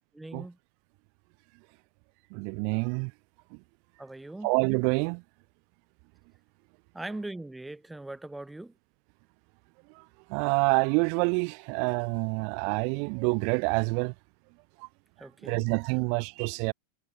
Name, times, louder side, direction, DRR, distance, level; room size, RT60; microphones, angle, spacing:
voice 1, 0.2-0.6 4.0-4.5 6.9-8.7 15.2-15.7, right 2 dB, 5° right, 6.0 m, -40 dB
voice 2, 2.3-3.1 4.4-5.2 10.3-14.1 15.4-16.7, right 40 dB or more, 45° right, 0.9 m, -27 dB
figure-of-eight pair, 90°, 0 cm